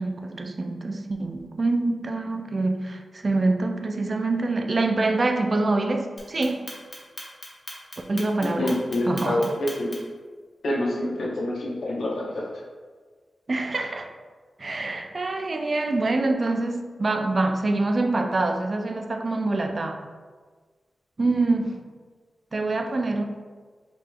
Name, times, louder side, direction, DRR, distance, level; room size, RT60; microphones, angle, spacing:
voice 1, 0.0-6.7 8.1-8.8 9.0-9.5 13.5-14.1 14.6-20.0 21.2-21.8 22.5-23.2, right 2 dB, 35° right, 4 dB, 0.3 m, -25 dB
Clock, 6.2-10.2, left 1 dB, 35° left, 0.8 m, -39 dB
voice 2, 8.6-9.9 10.6-12.5, left 1 dB, 75° left, -3 dB, 0.8 m, -26 dB
5.0 x 2.9 x 2.3 m, 1.5 s
wide cardioid pair, 140°, 0 cm